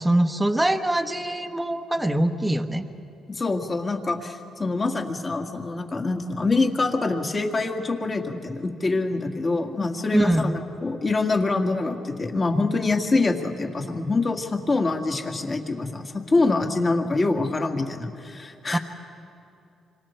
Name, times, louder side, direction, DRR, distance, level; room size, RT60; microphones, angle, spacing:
voice 1, 0.0-2.8 10.1-10.5 18.7-18.8, right 1 dB, 10° right, 6 dB, 1.1 m, -23 dB
voice 2, 3.3-18.8, left 3 dB, 35° left, 4 dB, 2.0 m, -25 dB
26.5 x 26.0 x 4.5 m, 2.7 s
cardioid pair, 90°, 0 cm